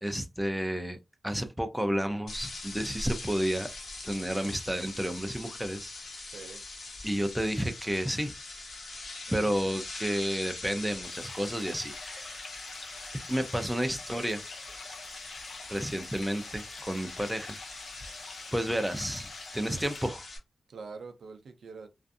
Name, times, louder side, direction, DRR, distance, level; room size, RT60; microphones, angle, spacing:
voice 1, 0.0-1.0 1.2-3.7 4.0-5.9 7.0-8.3 9.3-12.4 13.3-14.4 15.7-17.6 18.0-18.2 18.5-20.2, equal, 5° right, 0.4 m, -31 dB
sound 1, 2.3-20.4, left 2 dB, 65° left, 0.9 m, -42 dB
voice 2, 6.3-6.6 9.3-9.8 20.7-21.9, right 4 dB, 85° right, 0.4 m, -45 dB
sound 2, 11.0-20.1, left 4 dB, 85° left, 0.5 m, -47 dB
2.5 x 2.3 x 2.5 m
wide cardioid pair, 135°, 0 cm